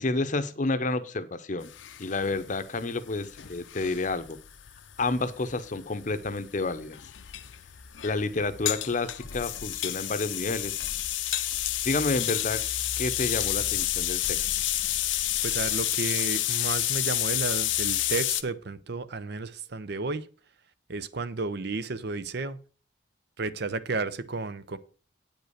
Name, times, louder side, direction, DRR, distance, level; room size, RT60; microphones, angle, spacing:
voice 1, 0.0-1.7 2.0-4.4 5.0-7.0 8.0-10.7 11.8-12.6 13.0-14.5, left 3 dB, 40° left, 0.8 m, -30 dB
sound 1, 1.6-18.4, left 13 dB, 75° left, 0.7 m, -30 dB
voice 2, 15.4-20.3 20.9-22.6 23.4-24.8, right 3 dB, 55° right, 0.7 m, -32 dB
8.9 x 5.4 x 6.5 m
head